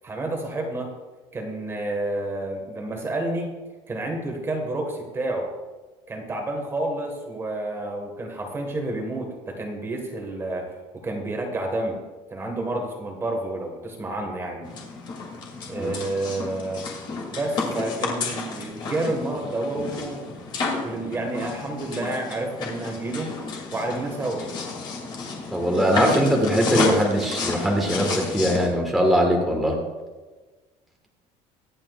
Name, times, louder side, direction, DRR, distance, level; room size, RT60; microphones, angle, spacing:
voice 1, 0.0-0.9 1.3-3.5 3.9-5.5 6.1-12.0 12.3-14.7 15.7-16.9 17.3-20.4 20.6-23.3 23.7-24.4, right 2 dB, 20° right, 2 dB, 1.5 m, -29 dB
sound 1, 14.6-28.7, left 4 dB, 35° left, 2.3 m, -31 dB
voice 2, 25.5-29.7, equal, ahead, -1 dB, 1.5 m, -21 dB
23.5 x 8.8 x 2.4 m, 1.3 s
cardioid pair, 175°, 13 cm